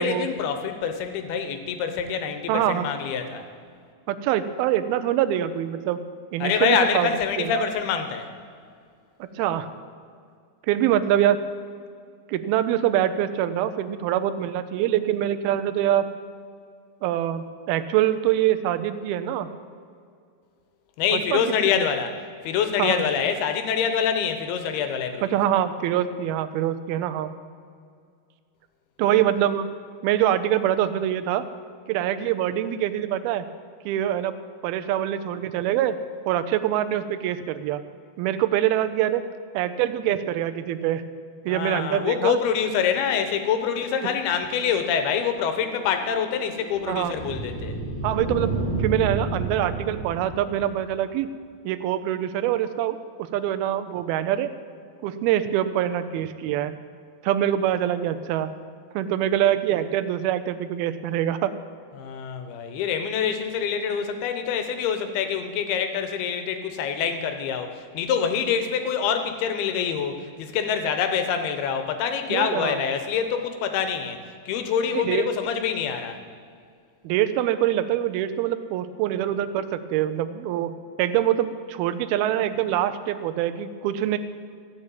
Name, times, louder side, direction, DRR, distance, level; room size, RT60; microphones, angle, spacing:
voice 1, 0.0-3.5 6.4-8.3 21.0-22.1 22.4-25.4 41.5-47.7 62.0-74.2 74.5-76.2, left 7 dB, 80° left, 7 dB, 3.0 m, -25 dB
voice 2, 2.5-2.9 4.1-6.0 6.3-7.1 7.4-7.6 9.2-9.7 10.7-11.4 12.3-16.1 17.0-19.5 21.1-21.5 22.8-23.0 25.2-27.3 29.0-29.7 30.0-31.5 31.9-33.4 33.9-34.4 34.6-36.0 36.3-37.8 38.2-39.2 39.5-41.0 41.5-42.4 44.0-44.2 46.9-47.1 48.0-48.5 48.8-51.3 51.6-53.0 53.3-54.5 55.0-56.7 57.2-58.5 58.9-61.5 72.3-72.8 74.9-75.3 77.0-80.7 81.0-84.2, right 11 dB, 85° right, 11 dB, 2.5 m, -24 dB
sound 1, 45.5-50.9, right 2 dB, 50° left, 1.7 m, -31 dB
15.0 x 6.3 x 9.0 m, 2.2 s
omnidirectional pair, 4.4 m